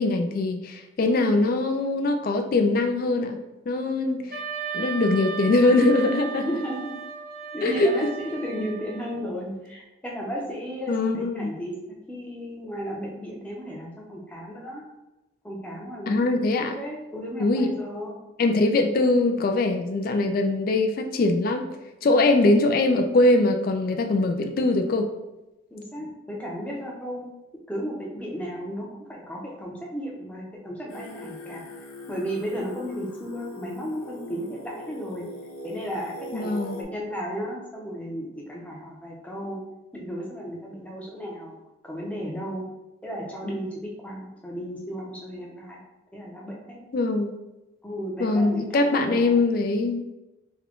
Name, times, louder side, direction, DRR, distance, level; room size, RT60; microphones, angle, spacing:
voice 1, 0.0-3.4 3.7-4.4 4.7-6.6 7.6-8.1 10.9-11.5 16.1-16.8 17.4-17.7 18.4-21.7 22.0-25.1 36.3-36.8 46.9-47.3 48.2-50.0, left 2 dB, 45° left, 5 dB, 0.3 m, -22 dB
Wind instrument woodwind instrument, 4.3-9.2, right 5 dB, 45° right, 0.4 m, -35 dB
voice 2, 6.4-6.9 7.5-14.8 15.4-16.3 16.7-18.1 25.7-27.3 27.7-31.6 32.1-35.3 35.6-39.6 39.9-41.6 41.8-42.6 43.0-45.8 46.1-46.8 47.8-49.4, equal, 5° left, -3 dB, 0.6 m, -34 dB
Singing, 30.9-36.8, left 2 dB, 85° left, 0.6 m, -41 dB
3.6 x 2.2 x 3.5 m, 0.97 s
head